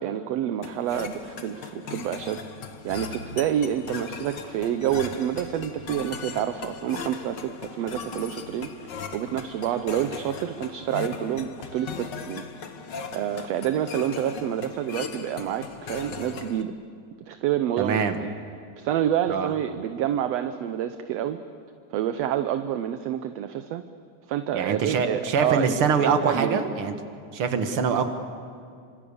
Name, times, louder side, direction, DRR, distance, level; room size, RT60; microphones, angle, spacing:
voice 1, 0.0-2.4 2.8-12.4 13.1-16.7 17.3-18.4 18.8-21.4 21.9-23.8 24.3-26.6, right 10 dB, 70° right, 9 dB, 1.8 m, -28 dB
sound 1, 0.6-16.6, left 5 dB, 50° left, 1.4 m, -38 dB
voice 2, 17.8-18.2 19.3-19.5 24.5-26.9 27.3-28.1, right 6 dB, 50° right, 7 dB, 2.3 m, -24 dB
28.5 x 26.0 x 7.1 m, 2.4 s
omnidirectional pair, 3.4 m